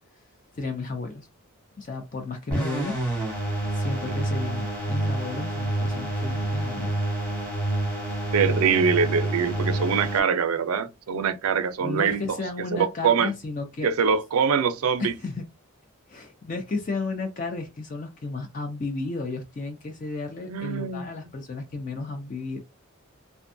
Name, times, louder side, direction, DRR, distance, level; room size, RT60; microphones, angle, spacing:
voice 1, 0.5-1.3 1.8-3.0 3.7-7.0 11.8-13.9 15.0-15.4 16.1-22.6, left 3 dB, 35° left, 0.4 m, -33 dB
sound 1, 2.5-10.2, right 1 dB, 5° left, 1.0 m, -28 dB
voice 2, 8.3-12.4 12.7-13.3 13.8-15.1 20.5-21.1, right 6 dB, 75° right, 0.4 m, -24 dB
2.5 x 2.2 x 2.5 m
head